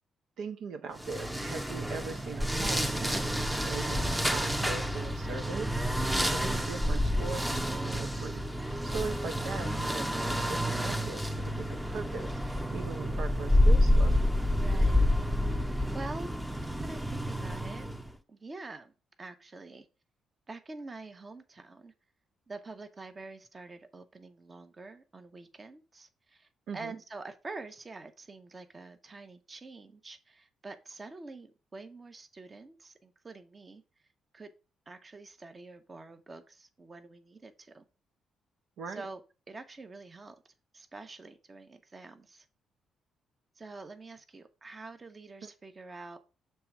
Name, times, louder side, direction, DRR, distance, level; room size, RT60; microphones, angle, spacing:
voice 1, 0.4-5.8 6.2-14.2 26.7-27.0 38.8-39.1 45.4-45.5, right 5 dB, 75° right, 0.8 m, -41 dB
sound 1, 1.0-18.1, equal, 5° right, 0.7 m, -29 dB
voice 2, 14.5-15.0 15.9-16.3 16.7-17.9 18.3-18.9 19.2-19.9 20.5-21.9 22.5-33.8 34.3-34.5 34.9-37.8 38.9-39.2 39.5-40.4 40.7-42.5 43.6-46.2, right 3 dB, 30° right, 1.0 m, -46 dB
6.8 x 3.3 x 5.9 m
cardioid pair, 90°, 0 cm